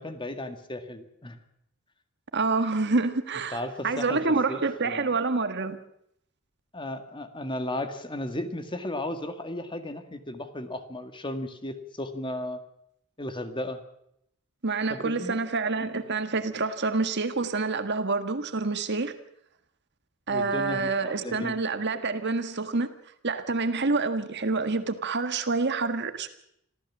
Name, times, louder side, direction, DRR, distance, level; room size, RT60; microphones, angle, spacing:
voice 1, 0.0-1.4 3.5-4.2 4.5-5.1 6.7-12.6 13.2-13.8 14.9-15.4 20.3-21.5, left 1 dB, 25° left, 1.9 m, -35 dB
voice 2, 2.3-5.8 14.6-19.1 20.3-22.9 23.2-26.3, right 3 dB, 55° right, 1.7 m, -27 dB
26.0 x 15.0 x 7.4 m
head